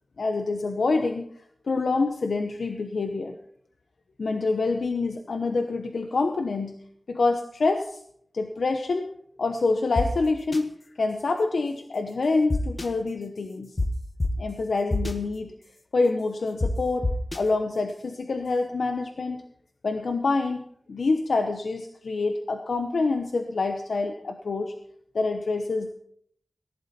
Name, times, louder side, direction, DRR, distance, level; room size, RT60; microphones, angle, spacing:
voice 1, 0.2-1.3 1.7-3.4 4.2-6.8 7.1-8.0 8.3-9.1 9.4-10.7 11.0-13.8 14.4-15.5 15.9-17.1 17.3-19.4 19.8-20.6 20.9-24.7 25.1-25.9, left 3 dB, 85° left, 5 dB, 0.9 m, -26 dB
sound 1, 10.0-10.1 10.5-10.6 12.5-12.9 13.8-13.9 14.2-14.3 14.9-15.1 16.6-16.7 17.0-17.4, left 2 dB, 40° left, 1.5 m, -25 dB
18.0 x 11.5 x 4.3 m, 0.67 s
wide cardioid pair, 80°, 0 cm